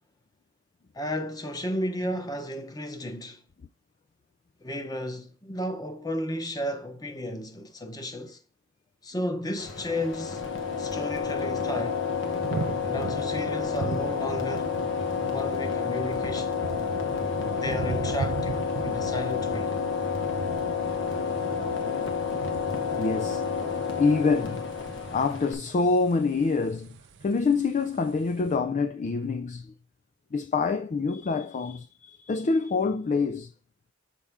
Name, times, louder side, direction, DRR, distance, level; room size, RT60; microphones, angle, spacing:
voice 1, 0.9-3.4 4.6-8.4 9.0-10.4 10.8-12.0 12.8-14.7 15.2-16.6 17.5-19.7, left 1 dB, 20° left, 1.0 m, -33 dB
sound 1, 9.6-25.5, left 6 dB, 65° left, 1.2 m, -30 dB
sound 2, 10.4-28.5, right 4 dB, 60° right, 0.5 m, -39 dB
voice 2, 23.0-23.4 23.9-24.6 25.1-27.0 27.2-29.7 30.3-33.5, left 4 dB, 40° left, 0.4 m, -26 dB
7.3 x 5.4 x 3.6 m
head